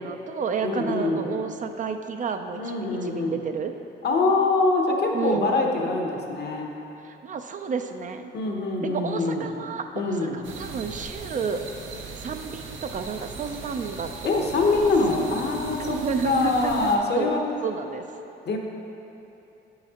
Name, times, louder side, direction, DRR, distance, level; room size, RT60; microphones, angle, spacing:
voice 1, 0.0-2.8 3.0-3.7 5.1-5.6 7.0-8.3 8.8-11.6 12.2-14.9 15.8-17.3 17.6-18.0, right 5 dB, 40° right, 7 dB, 0.4 m, -31 dB
voice 2, 0.6-1.3 2.5-3.4 4.0-6.7 8.3-9.5 9.9-10.4 14.2-16.0 16.2-17.4 18.5-18.6, left 3 dB, 55° left, 1 dB, 0.9 m, -24 dB
sound 1, 10.4-17.0, right 4 dB, 75° right, 0.7 m, -39 dB
8.1 x 5.7 x 2.9 m, 2.9 s
cardioid pair, 90°, 20 cm